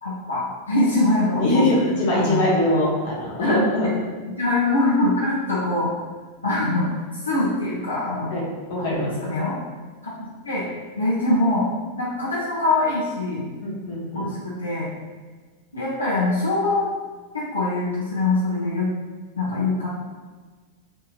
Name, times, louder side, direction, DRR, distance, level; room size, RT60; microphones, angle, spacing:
voice 1, 0.0-1.6 2.1-2.4 3.4-3.6 4.4-5.9 6.4-6.9 7.2-8.3 8.8-9.5 10.2-10.7 11.0-11.7 12.0-13.5 14.1-14.9 15.7-16.9 17.5-18.9 19.4-19.9, left 2 dB, 80° left, -7 dB, 0.5 m, -23 dB
voice 2, 1.4-3.9 8.3-8.4 8.7-9.3 13.6-14.3, left 1 dB, 50° left, -5 dB, 0.9 m, -22 dB
3.0 x 2.6 x 2.5 m, 1.4 s
figure-of-eight pair, 90°, 0 cm